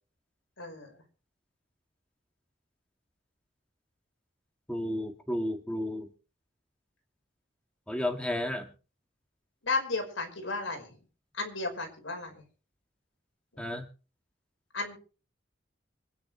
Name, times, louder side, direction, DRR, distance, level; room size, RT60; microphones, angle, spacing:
voice 1, 0.6-1.0 9.6-11.0 11.3-12.4 13.5-13.6 14.7-15.0, left 3 dB, 90° left, 4 dB, 5.3 m, -34 dB
voice 2, 4.7-6.1 7.9-8.7 13.6-13.8, left 1 dB, 5° left, 3 dB, 1.9 m, -32 dB
25.0 x 10.0 x 3.3 m, 0.37 s
head